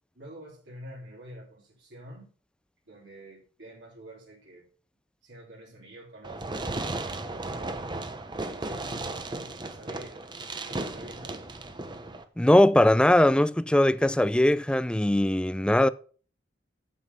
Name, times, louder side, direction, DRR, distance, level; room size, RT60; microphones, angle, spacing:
voice 1, 0.1-2.3 2.9-4.7 5.2-7.8 8.5-11.4, right 1 dB, 75° right, 3.5 m, -47 dB
Fireworks, 6.2-12.2, right 2 dB, 25° right, 1.0 m, -35 dB
voice 2, 12.4-15.9, left 1 dB, 5° left, 0.4 m, -20 dB
8.0 x 7.9 x 5.5 m
head